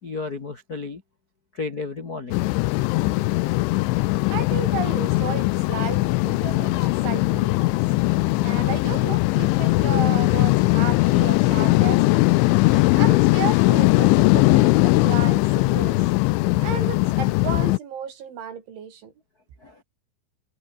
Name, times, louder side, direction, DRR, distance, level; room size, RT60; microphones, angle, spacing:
voice 1, 0.0-1.0 1.5-2.4 12.6-12.9 19.6-19.8, left 4 dB, 65° left, 0.9 m, -33 dB
sound 1, 2.3-17.8, left 21 dB, 85° left, 3.1 m, -20 dB
voice 2, 4.3-7.8 8.4-12.2 12.9-16.0 16.6-19.1, right 8 dB, 75° right, 6.4 m, -33 dB
omnidirectional pair, 5.4 m